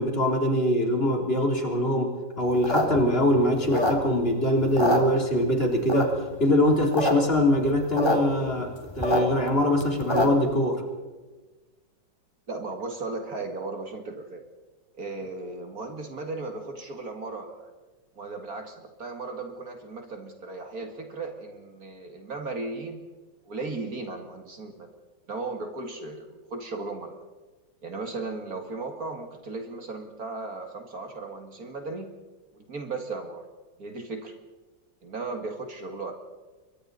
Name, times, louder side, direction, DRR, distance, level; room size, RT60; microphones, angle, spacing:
voice 1, 0.0-10.8, left 1 dB, 30° left, 1 dB, 3.5 m, -23 dB
sound 1, 2.5-4.3 4.6-5.5 5.9-6.3 6.7-7.1 7.4-7.5 7.6-8.2 8.5-10.5, left 1 dB, 15° left, 2.4 m, -25 dB
voice 2, 12.5-14.4 15.0-17.7 18.1-23.0 23.4-24.9 25.3-27.1 27.8-32.1 32.5-33.5 33.8-34.3 35.0-36.1, right 3 dB, 50° right, 4 dB, 2.5 m, -36 dB
29.0 x 23.0 x 4.1 m, 1.2 s
omnidirectional pair, 2.1 m